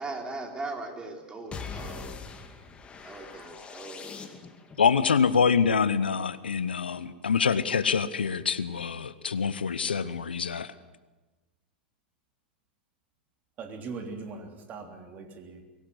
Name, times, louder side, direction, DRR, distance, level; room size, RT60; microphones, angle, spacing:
voice 1, 0.0-2.1 3.0-4.2, right 3 dB, 15° right, 2 dB, 4.1 m, -39 dB
sound 1, 1.5-4.8, left 5 dB, 20° left, 2.2 m, -42 dB
voice 2, 4.8-10.7, left 6 dB, 80° left, 15 dB, 0.9 m, -25 dB
voice 3, 13.6-15.6, right 4 dB, 30° right, 4 dB, 3.4 m, -40 dB
23.5 x 17.5 x 7.8 m, 1.2 s
figure-of-eight pair, 95°, 5 cm